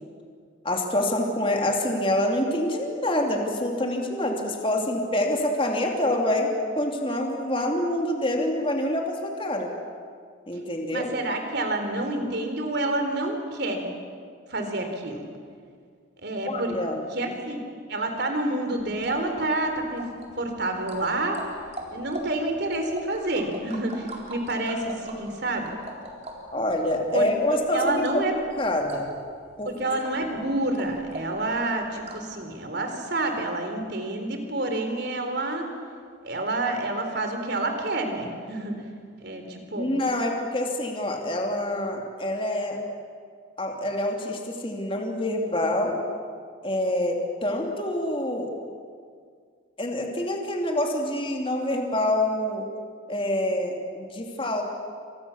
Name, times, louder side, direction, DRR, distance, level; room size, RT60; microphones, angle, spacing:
voice 1, 0.6-9.7 10.5-11.1 16.5-17.3 26.5-29.1 29.6-29.7 39.8-42.8 43.6-46.0 46.6-48.5 49.8-52.6 53.1-54.6, left 1 dB, 25° left, 1 dB, 3.0 m, -26 dB
voice 2, 10.9-13.8 14.5-15.2 16.2-16.7 17.1-17.6 17.9-20.1 20.4-21.4 21.9-25.7 27.1-27.3 27.7-28.3 29.6-35.7 36.2-38.8 39.2-39.9, right 2 dB, 55° right, 5 dB, 4.0 m, -28 dB
sound 1, 18.8-32.4, right 1 dB, 30° right, 4.2 m, -42 dB
29.0 x 26.5 x 7.3 m, 2.1 s
head